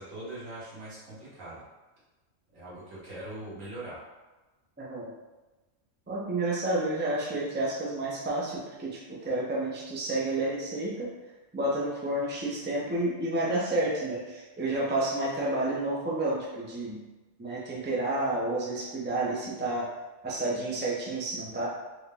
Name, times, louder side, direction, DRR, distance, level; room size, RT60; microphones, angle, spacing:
voice 1, 0.0-1.6 2.5-4.0, right 1 dB, 85° right, -9 dB, 1.8 m, -41 dB
voice 2, 4.8-5.1 6.1-11.1 11.5-17.0 17.4-19.9 20.2-21.7, right 2 dB, 10° right, -5 dB, 0.5 m, -30 dB
4.4 x 2.2 x 3.4 m, 1.1 s
omnidirectional pair, 1.3 m